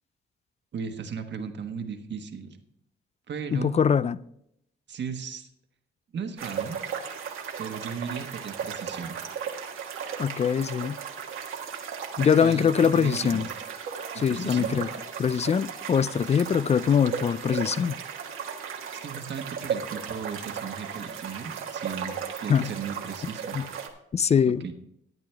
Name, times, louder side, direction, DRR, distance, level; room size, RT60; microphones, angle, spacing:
voice 1, 0.7-2.6 3.3-3.8 4.9-5.5 6.1-6.8 7.6-9.2 12.4-13.5 14.1-14.8 19.0-23.6 24.6-24.7, right 6 dB, 60° right, 1.3 m, -36 dB
voice 2, 3.5-4.2 10.2-11.0 12.2-13.5 14.2-14.9 15.2-18.0 22.5-22.7 23.5-23.7 24.1-24.6, left 7 dB, 30° left, 0.4 m, -23 dB
sound 1, 6.4-23.9, right 7 dB, 80° right, 1.5 m, -36 dB
12.0 x 9.6 x 3.4 m
cardioid pair, 75°, 21 cm